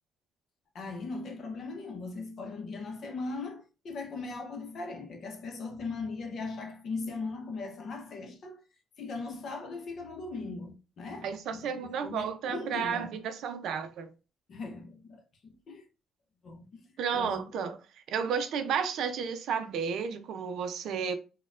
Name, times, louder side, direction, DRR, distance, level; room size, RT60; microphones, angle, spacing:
voice 1, 0.7-8.6 9.0-13.2 14.5-15.9 16.4-16.8 17.1-17.4, left 3 dB, 45° left, 0.7 m, -39 dB
voice 2, 11.2-14.1 17.0-17.8 18.1-21.1, right 7 dB, 65° right, 0.5 m, -32 dB
4.2 x 2.2 x 2.4 m
cardioid pair, 155°, 0 cm